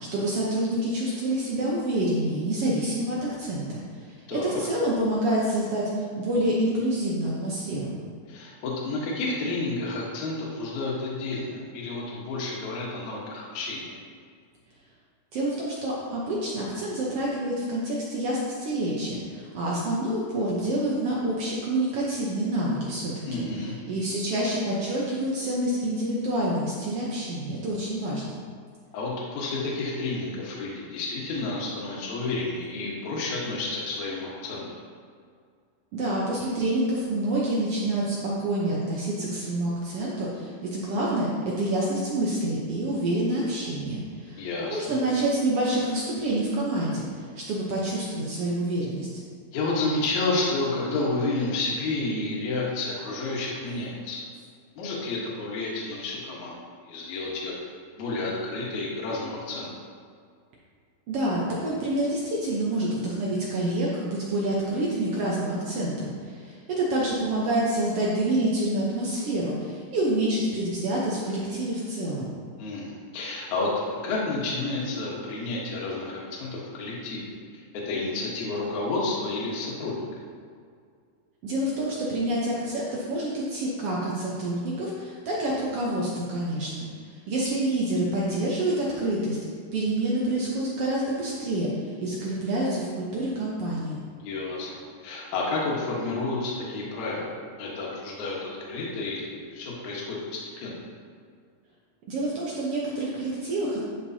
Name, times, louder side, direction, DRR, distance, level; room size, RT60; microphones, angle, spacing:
voice 1, 0.1-3.8 4.3-5.8 6.2-8.0 15.3-23.4 23.9-28.3 35.9-47.0 47.5-49.1 61.1-72.3 81.4-86.9 87.3-89.4 89.7-91.7 92.0-94.0 102.1-103.8, right 1 dB, 75° right, -5 dB, 1.3 m, -27 dB
voice 2, 4.3-4.6 8.3-13.9 23.3-23.7 28.9-34.6 44.4-44.8 49.5-54.2 54.7-56.6 56.8-59.7 72.6-73.7 74.0-80.1 94.1-97.3 97.6-100.8, left 3 dB, 65° left, -4 dB, 2.5 m, -30 dB
11.0 x 5.3 x 2.8 m, 2.1 s
omnidirectional pair, 3.9 m